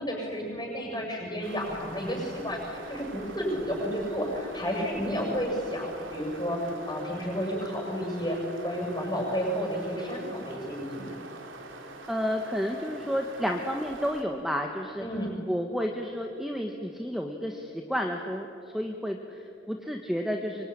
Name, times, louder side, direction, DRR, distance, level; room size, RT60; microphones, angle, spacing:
voice 1, 0.0-11.2 15.0-15.4, equal, 20° left, 0 dB, 7.5 m, -31 dB
sound 1, 1.4-14.2, right 2 dB, 80° right, 3.3 m, -44 dB
voice 2, 12.1-15.0 15.5-18.5 18.7-20.7, equal, ahead, 3 dB, 1.3 m, -31 dB
25.0 x 23.5 x 10.0 m, 2.7 s
head